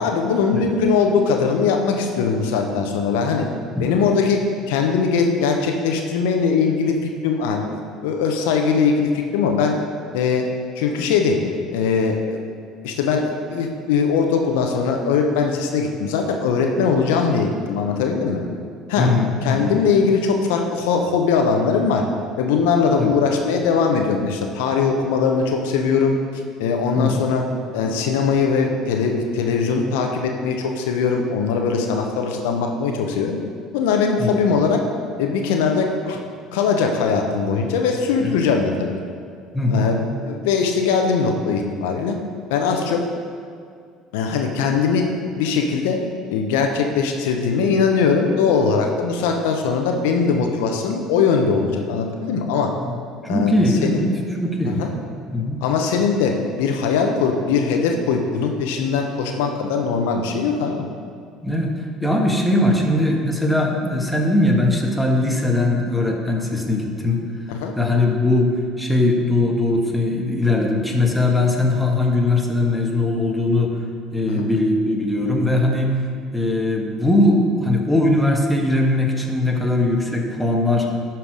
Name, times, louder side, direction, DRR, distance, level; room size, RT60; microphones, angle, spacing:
voice 1, 0.0-3.5 3.8-4.4 4.7-7.0 7.2-7.7 8.0-9.8 10.1-10.4 10.8-11.4 11.7-12.4 12.8-18.4 18.9-19.1 19.4-22.0 22.4-26.2 26.6-27.4 27.7-33.4 33.7-34.8 35.2-36.2 36.5-39.0 39.7-42.1 42.5-43.0 44.1-45.0 45.3-46.0 46.3-52.7 53.3-53.5 53.8-54.0 54.7-54.9 55.6-60.8 67.5-67.7 74.3-74.5, left 5 dB, 75° left, 3 dB, 0.8 m, -20 dB
voice 2, 19.0-19.7 23.0-23.1 26.9-27.2 34.2-34.5 38.2-38.3 39.5-39.9 52.8-52.9 53.2-54.1 54.4-54.8 55.3-55.6 61.4-61.7 62.0-67.2 67.7-73.7 74.1-75.9 76.3-80.9, left 2 dB, ahead, -1 dB, 1.6 m, -20 dB
11.5 x 4.6 x 5.0 m, 2.2 s
hypercardioid pair, 65°, 0 cm